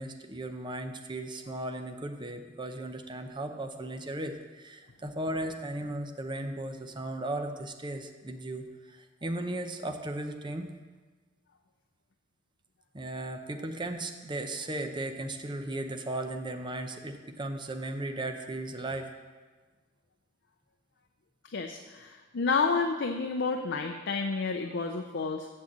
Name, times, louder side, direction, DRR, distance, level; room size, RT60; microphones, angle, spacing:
voice 1, 0.0-10.7 12.9-19.1, right 1 dB, 25° right, 6 dB, 0.7 m, -36 dB
voice 2, 21.5-25.5, left 4 dB, 65° left, 4 dB, 0.6 m, -30 dB
7.1 x 6.4 x 7.4 m, 1.4 s
head